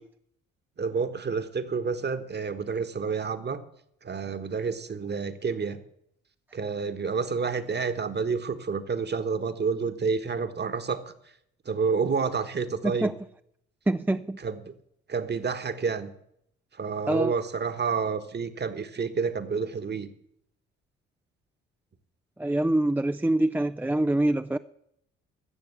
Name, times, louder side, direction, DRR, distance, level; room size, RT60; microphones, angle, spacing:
voice 1, 0.8-3.6 4.0-5.8 6.5-11.1 11.6-13.1 14.4-14.7 15.1-16.1 16.8-20.1, right 5 dB, 35° right, 1.4 m, -29 dB
voice 2, 13.9-14.4 17.1-17.3 22.4-24.6, right 1 dB, 5° right, 0.4 m, -25 dB
13.0 x 7.0 x 8.2 m
supercardioid pair, 65°, 29 cm